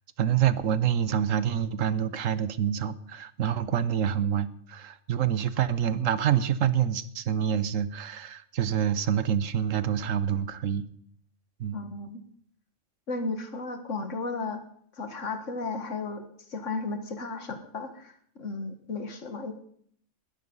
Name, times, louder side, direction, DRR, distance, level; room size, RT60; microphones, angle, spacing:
voice 1, 0.2-10.9 11.6-11.8, right 9 dB, 85° right, 15 dB, 1.3 m, -27 dB
voice 2, 11.7-12.2 13.1-14.6 15.0-19.5, left 3 dB, 75° left, 8 dB, 2.0 m, -34 dB
20.5 x 12.5 x 5.5 m, 0.63 s
omnidirectional pair, 1.3 m